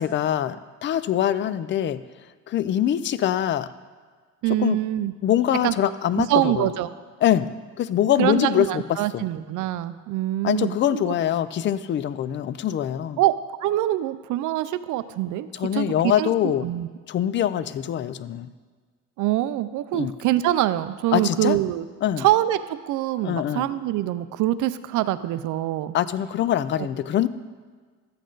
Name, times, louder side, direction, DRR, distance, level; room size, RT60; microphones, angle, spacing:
voice 1, 0.0-2.0 2.5-3.7 4.6-4.8 5.2-6.7 7.2-7.5 7.8-8.8 9.1-9.2 10.4-13.2 15.5-16.7 17.1-18.5 19.9-20.1 21.1-21.6 22.0-22.3 23.2-23.6 25.9-27.3, left 11 dB, 35° left, 14 dB, 0.4 m, -23 dB
voice 2, 4.4-5.1 5.6-5.7 6.2-6.9 8.2-11.1 13.2-13.4 13.6-16.9 19.2-21.8 22.2-25.9 26.8-26.9, right 14 dB, 70° right, 14 dB, 0.5 m, -24 dB
13.0 x 8.4 x 3.9 m, 1.5 s
cardioid pair, 140°, 32 cm